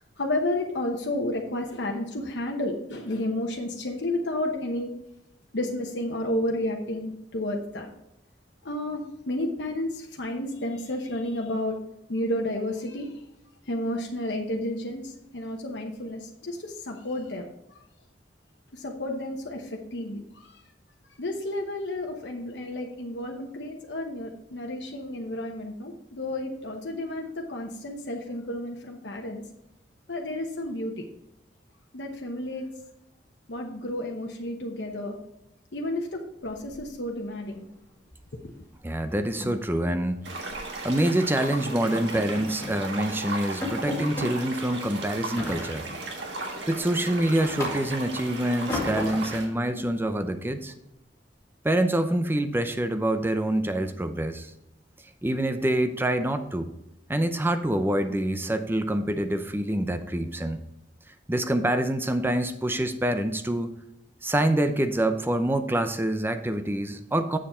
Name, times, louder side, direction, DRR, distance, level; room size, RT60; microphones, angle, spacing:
voice 1, 0.0-4.9 5.5-7.9 8.6-11.8 12.1-13.1 13.7-17.5 18.7-20.5 21.2-29.4 30.1-31.0 31.9-32.7 33.5-35.2 35.7-37.7, left 1 dB, 75° left, 1 dB, 1.0 m, -31 dB
sound 1, 36.4-37.3 37.5-37.8 38.1-38.3 38.6-38.7 39.1-40.7 41.2-41.4 41.9-42.8 43.2-43.3 43.6-44.3 45.4-46.1 46.5-48.1 48.7-49.4, left 2 dB, 15° left, 2.3 m, -35 dB
voice 2, 38.8-40.2 40.8-45.9 46.7-50.7 51.6-54.5 55.2-56.7 57.1-60.6 61.3-63.7 64.2-67.4, right 1 dB, 10° right, 8 dB, 0.6 m, -26 dB
sound 2, 40.2-49.5, right 2 dB, 85° right, 1.6 m, -36 dB
7.4 x 6.9 x 4.3 m, 0.85 s
head